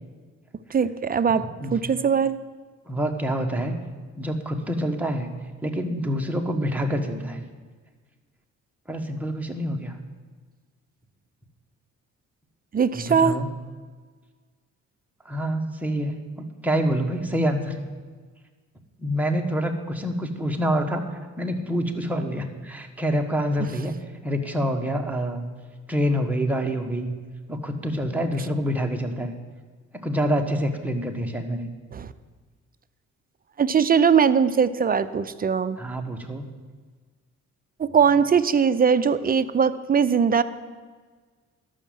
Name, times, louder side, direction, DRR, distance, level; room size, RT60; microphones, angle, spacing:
voice 1, 0.7-1.4 1.7-2.4 12.7-13.4 31.9-32.1 33.6-35.8 37.8-40.4, right 6 dB, 30° right, 13 dB, 0.5 m, -20 dB
voice 2, 2.9-3.8 4.2-5.3 5.6-7.4 8.9-10.0 12.9-13.5 15.2-17.8 19.0-23.9 24.2-25.5 25.9-27.2 27.5-29.3 29.9-31.7 35.8-36.5, equal, 5° right, 2 dB, 1.4 m, -26 dB
12.0 x 6.4 x 7.6 m, 1.5 s
cardioid pair, 90°, 30 cm